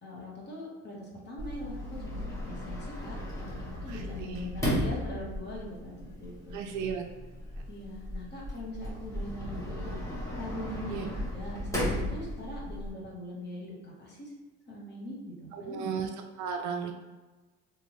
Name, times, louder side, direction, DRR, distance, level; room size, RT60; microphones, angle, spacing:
voice 1, 0.0-6.6 7.7-9.9 10.4-14.3 14.7-15.9, left 1 dB, 30° left, -3 dB, 1.1 m, -42 dB
Sliding door, 1.4-12.9, equal, 10° left, 1.2 m, -36 dB
voice 2, 3.9-4.5 6.5-7.1 10.9-11.1 15.5-16.1 16.4-16.9, right 6 dB, 55° right, 4 dB, 0.4 m, -35 dB
3.4 x 2.6 x 3.0 m, 1.2 s
cardioid pair, 120°, 35 cm